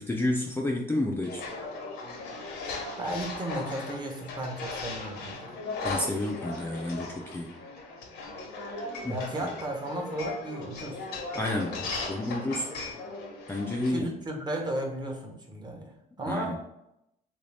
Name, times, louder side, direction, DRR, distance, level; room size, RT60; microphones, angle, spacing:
voice 1, 0.0-1.4 5.8-7.5 9.0-9.5 11.3-12.7 13.5-14.1 16.3-16.6, left 1 dB, 15° left, -1 dB, 0.4 m, -30 dB
sound 1, 1.2-13.9, left 3 dB, 85° left, 0.9 m, -37 dB
voice 2, 2.7-5.6 9.1-11.0 13.9-16.6, right 1 dB, 25° right, 2 dB, 0.8 m, -35 dB
3.2 x 2.7 x 3.2 m, 0.82 s
cardioid pair, 110°, 17 cm